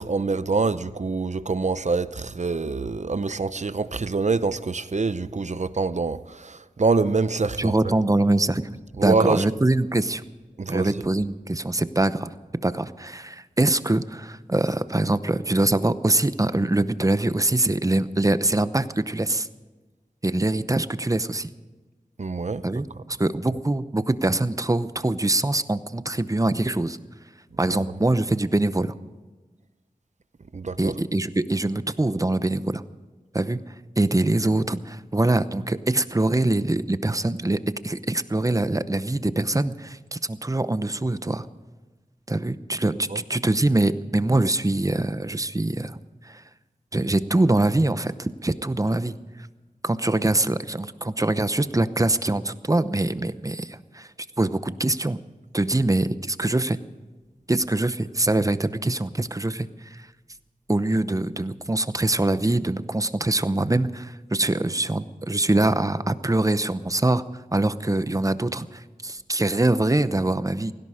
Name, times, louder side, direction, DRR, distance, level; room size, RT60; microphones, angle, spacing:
voice 1, 0.0-7.9 9.0-9.5 10.6-11.0 22.2-22.6 27.7-27.8 30.5-30.9 43.1-43.2, right 4 dB, 55° right, 14 dB, 0.7 m, -25 dB
voice 2, 7.6-10.2 10.7-12.3 12.6-19.5 20.2-21.5 22.6-27.0 27.6-28.9 30.8-32.8 33.3-33.6 34.0-41.5 42.3-45.9 46.2-46.4 46.9-49.2 49.8-54.1 54.4-55.2 55.5-56.8 57.5-60.0 60.7-67.2 67.5-70.7, right 2 dB, 25° right, 13 dB, 0.8 m, -23 dB
17.0 x 17.0 x 4.9 m, 1.3 s
wide cardioid pair, 70°, 15 cm